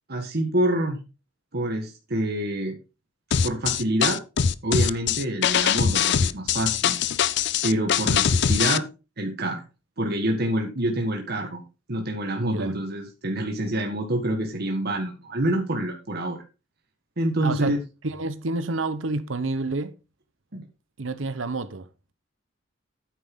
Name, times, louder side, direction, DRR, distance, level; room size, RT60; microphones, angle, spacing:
voice 1, 0.1-1.0 1.5-2.8 3.4-4.2 4.6-7.0 7.6-8.8 9.2-9.6 10.0-11.6 11.9-16.4 17.2-17.8 20.5-20.6, right 1 dB, 55° right, 1.6 m, -26 dB
sound 1, 3.3-8.8, left 7 dB, 60° left, 0.5 m, -22 dB
voice 2, 12.4-12.8 17.4-17.8 18.0-19.9 21.0-21.9, right 3 dB, 85° right, 0.9 m, -29 dB
10.0 x 9.3 x 3.7 m
head